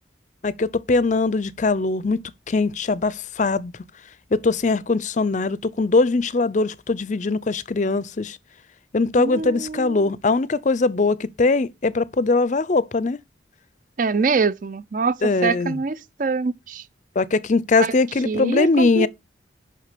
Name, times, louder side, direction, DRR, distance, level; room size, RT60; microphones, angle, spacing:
voice 1, 0.4-3.7 4.3-8.4 8.9-13.2 15.2-15.8 17.2-19.1, left 3 dB, 40° left, 0.5 m, -21 dB
voice 2, 9.2-10.1 14.0-16.8 17.8-17.9 18.2-19.1, right 4 dB, 45° right, 0.5 m, -24 dB
6.2 x 5.7 x 6.6 m
head